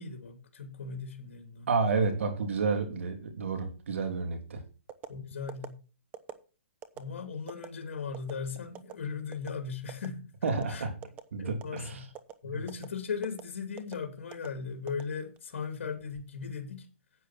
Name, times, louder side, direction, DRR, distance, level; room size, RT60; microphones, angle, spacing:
voice 1, 0.0-1.7 5.1-5.8 7.0-10.3 10.7-10.9 11.4-12.0 12.4-16.9, left 5 dB, 65° left, 2.9 m, -38 dB
voice 2, 1.7-4.6 10.4-11.0 11.3-12.0 12.5-12.6, right 4 dB, 75° right, 3.2 m, -30 dB
sound 1, 4.9-5.1 5.5-5.7 6.1-6.4 6.8-7.0 7.5-7.7 8.1-8.3 8.7-8.9 9.3-9.5 9.9-10.1 10.5-10.6 11.0-11.3 11.6-11.8 12.1-12.3 12.7-12.9 13.2-13.4 13.8-14.0 14.3-14.5 14.9-15.5 15.9-16.2, right 10 dB, 20° right, 0.9 m, -43 dB
10.0 x 8.5 x 4.5 m
hypercardioid pair, 150°, 7 cm